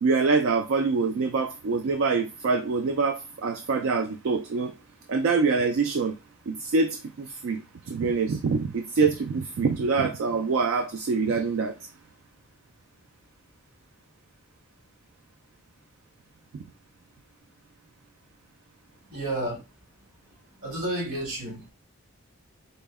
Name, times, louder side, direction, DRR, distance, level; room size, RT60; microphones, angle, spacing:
voice 1, 0.0-4.7 5.1-6.1 6.5-11.9, right 4 dB, 70° right, 0.3 m, -25 dB
voice 2, 19.1-19.6 20.6-21.7, right 1 dB, 85° right, 1.9 m, -31 dB
4.1 x 2.0 x 3.4 m
head